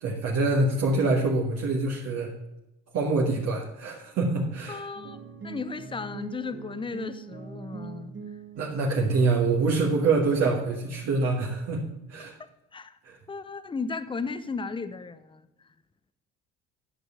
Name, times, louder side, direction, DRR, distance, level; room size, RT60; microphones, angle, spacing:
voice 1, 0.0-2.3 2.9-4.9 8.6-11.8 12.1-12.3 13.0-13.2, right 3 dB, 60° right, -2 dB, 1.8 m, -25 dB
voice 2, 4.7-8.1 12.2-13.0 13.3-15.7, left 4 dB, 15° left, 13 dB, 0.7 m, -36 dB
sound 1, 4.9-10.4, right 6 dB, 40° right, 1.8 m, -42 dB
11.0 x 5.4 x 7.0 m, 0.93 s
cardioid pair, 105°, 29 cm